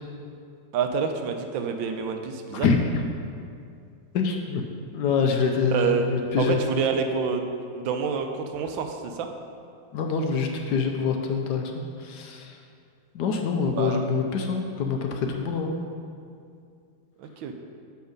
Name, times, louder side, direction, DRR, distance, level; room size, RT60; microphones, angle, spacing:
voice 1, 0.7-2.7 5.7-6.1 6.4-9.3 13.7-14.1 17.2-17.5, right 6 dB, 85° right, 5 dB, 1.4 m, -27 dB
voice 2, 4.1-4.6 4.9-6.6 9.9-11.6 12.0-12.5 13.1-15.8, left 5 dB, 70° left, 3 dB, 1.1 m, -25 dB
7.1 x 5.3 x 5.1 m, 2.3 s
omnidirectional pair, 2.1 m